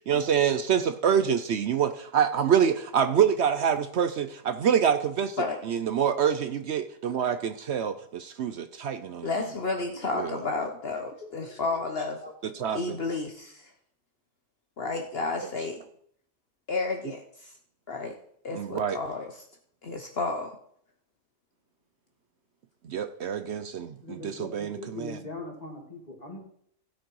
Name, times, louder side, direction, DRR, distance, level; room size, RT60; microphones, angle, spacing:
voice 1, 0.1-9.3 10.1-10.3 12.4-13.0 18.5-19.0 22.8-25.2, right 8 dB, 65° right, 10 dB, 0.9 m, -26 dB
voice 2, 9.2-12.2 12.7-13.7 14.8-15.8 16.7-17.5 17.9-18.1 18.4-19.4 19.8-20.5, left 3 dB, 55° left, 4 dB, 1.1 m, -31 dB
voice 3, 9.8-10.1 10.4-10.6 11.5-11.9 12.2-12.3 12.6-12.7 24.0-26.4, left 2 dB, 30° left, 0 dB, 2.8 m, -41 dB
16.0 x 6.5 x 4.7 m, 0.66 s
omnidirectional pair, 1.3 m